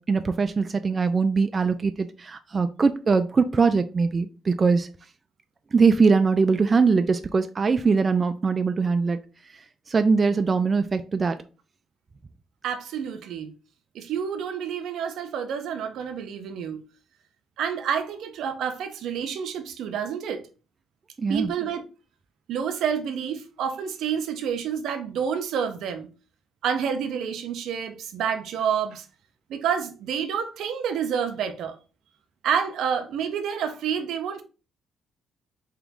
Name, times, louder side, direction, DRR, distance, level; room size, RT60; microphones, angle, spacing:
voice 1, 0.0-4.9 5.7-9.2 9.9-11.3 21.2-21.5, right 4 dB, 35° right, 0.3 m, -22 dB
voice 2, 12.6-13.5 13.9-16.8 17.6-20.5 21.3-21.8 22.5-26.1 26.6-29.1 29.5-31.7 32.4-34.4, right 7 dB, 80° right, 0.6 m, -28 dB
3.7 x 3.0 x 3.5 m
cardioid pair, 90°, 0 cm